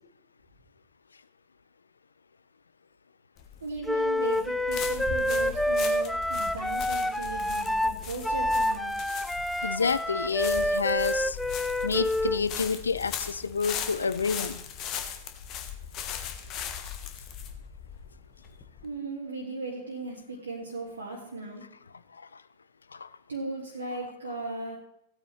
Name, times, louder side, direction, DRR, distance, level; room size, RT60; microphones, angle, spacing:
sound 1, 3.4-18.9, left 8 dB, 35° left, 1.3 m, -39 dB
voice 1, 3.6-8.9 18.8-21.6 23.3-24.8, right 3 dB, 75° right, -2 dB, 1.7 m, -37 dB
Wind instrument woodwind instrument, 3.9-12.4, left 1 dB, 5° left, 0.4 m, -28 dB
voice 2, 9.6-11.4 11.8-14.6 22.1-22.4 22.9-23.1, left 5 dB, 75° left, 15 dB, 0.4 m, -29 dB
16.0 x 9.0 x 3.3 m, 0.80 s
figure-of-eight pair, 90°, 0 cm